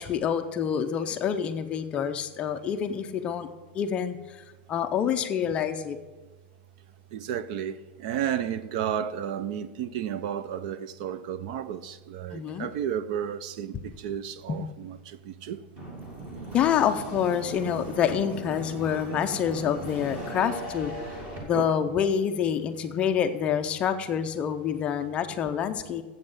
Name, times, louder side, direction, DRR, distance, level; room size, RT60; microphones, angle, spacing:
voice 1, 0.0-3.5 3.7-4.2 4.7-6.0 12.3-12.7 13.7-13.8 14.5-14.6 16.5-20.9 21.4-26.0, left 8 dB, 20° left, 0.5 m, -27 dB
voice 2, 7.1-15.6 21.5-21.7, right 9 dB, 45° right, 0.4 m, -32 dB
sound 1, 15.8-21.4, right 1 dB, 20° right, 2.0 m, -38 dB
7.8 x 7.6 x 6.5 m
supercardioid pair, 175°, 6 cm